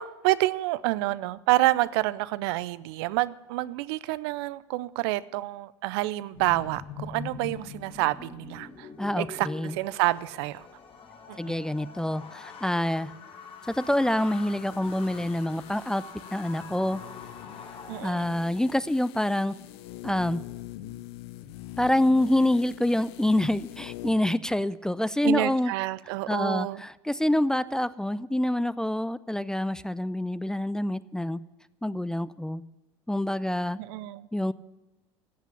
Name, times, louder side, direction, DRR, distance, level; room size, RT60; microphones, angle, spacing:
voice 1, 0.0-8.9 9.2-10.7 11.3-11.6 17.9-18.3 25.2-26.8 33.8-34.3, right 18 dB, 70° right, 18 dB, 0.5 m, -28 dB
sound 1, 6.3-18.1, left 5 dB, 40° left, 2.2 m, -44 dB
voice 2, 9.0-9.7 11.4-13.1 13.7-16.0 16.3-17.0 18.0-19.5 20.0-20.4 21.8-25.7 26.3-31.4 31.8-32.6 33.1-33.8 34.3-34.5, left 1 dB, 5° left, 18 dB, 0.4 m, -26 dB
sound 2, 13.6-24.3 24.6-24.7, left 14 dB, 70° left, 0.8 m, -44 dB
14.5 x 8.1 x 7.1 m, 1.1 s
hypercardioid pair, 75°, 14 cm